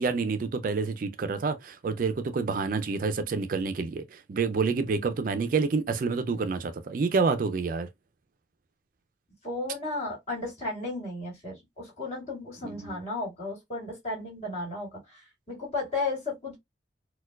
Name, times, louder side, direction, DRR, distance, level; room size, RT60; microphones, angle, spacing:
voice 1, 0.0-7.9 12.6-13.0, right 4 dB, 50° right, 0.3 m, -28 dB
voice 2, 9.4-15.2 15.5-16.6, left 2 dB, 40° left, 2.1 m, -34 dB
4.3 x 2.2 x 2.2 m
head